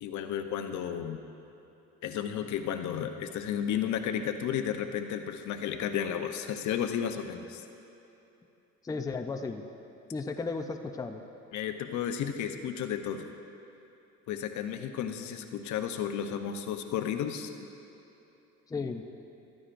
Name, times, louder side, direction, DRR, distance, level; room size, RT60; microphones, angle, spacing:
voice 1, 0.0-1.2 2.0-7.6 11.5-13.3 14.3-17.5, left 9 dB, 70° left, 7 dB, 0.8 m, -33 dB
voice 2, 8.8-9.6 10.1-11.2 18.7-19.0, left 4 dB, 10° left, 5 dB, 0.5 m, -34 dB
14.5 x 13.0 x 2.6 m, 3.0 s
cardioid pair, 110°, 30 cm